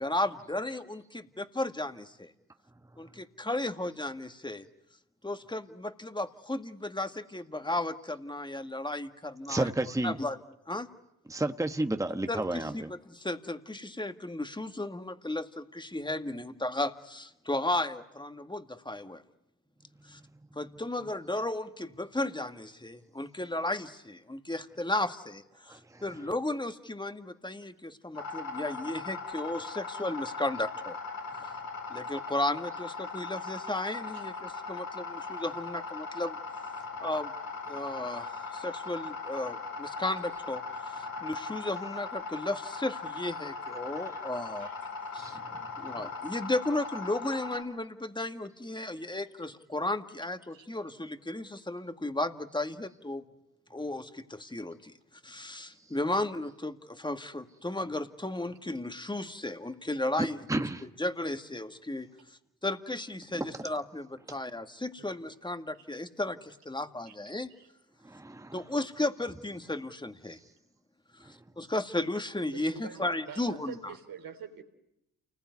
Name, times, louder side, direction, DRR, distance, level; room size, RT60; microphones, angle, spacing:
voice 1, 0.0-2.3 3.0-4.7 5.2-9.7 10.0-10.4 10.7-10.9 12.3-19.2 20.0-20.2 20.6-31.0 31.9-36.4 37.0-37.3 37.7-44.7 45.1-45.4 45.8-53.2 53.7-54.9 55.2-60.7 61.0-67.5 68.5-70.4 71.2-73.9, left 2 dB, 15° left, 2.0 m, -34 dB
voice 2, 9.5-10.2 11.3-12.9 25.7-26.3 43.9-44.2 45.2-46.1 57.8-57.9 60.2-60.8 63.3-63.6 64.3-64.4 68.0-68.8 71.2-71.3, right 2 dB, 10° right, 1.3 m, -33 dB
sound 1, 28.1-47.6, left 4 dB, 85° left, 5.7 m, -39 dB
voice 3, 72.5-74.6, right 7 dB, 85° right, 3.6 m, -45 dB
29.0 x 20.5 x 9.6 m
cardioid pair, 75°, 34 cm